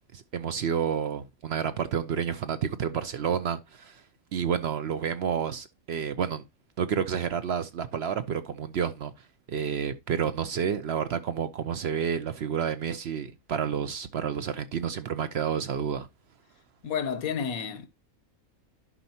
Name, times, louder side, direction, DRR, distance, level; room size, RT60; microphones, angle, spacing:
voice 1, 0.1-4.0 4.3-6.4 6.8-9.1 9.5-16.1, right 7 dB, 60° right, 0.7 m, -30 dB
voice 2, 16.8-17.9, left 7 dB, 80° left, 1.3 m, -30 dB
11.0 x 5.4 x 2.8 m
omnidirectional pair, 1.5 m